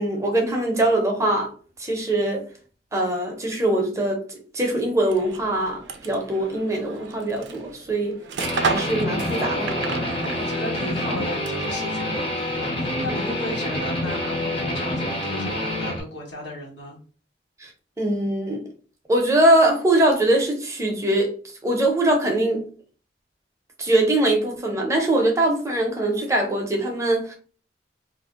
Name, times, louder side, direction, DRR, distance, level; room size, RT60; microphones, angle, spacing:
voice 1, 0.0-1.5 1.8-2.5 2.9-4.2 4.5-8.2 8.6-9.7 17.6-17.7 18.0-18.6 19.1-21.3 21.6-22.7 23.8-27.3, right 1 dB, 15° right, 0.6 m, -22 dB
sound 1, 5.0-11.8, right 4 dB, 90° right, 0.4 m, -33 dB
Guitar, 8.4-16.0, left 1 dB, 30° left, 0.6 m, -27 dB
voice 2, 10.4-17.0, left 1 dB, 85° left, 1.3 m, -34 dB
2.5 x 2.1 x 3.6 m
head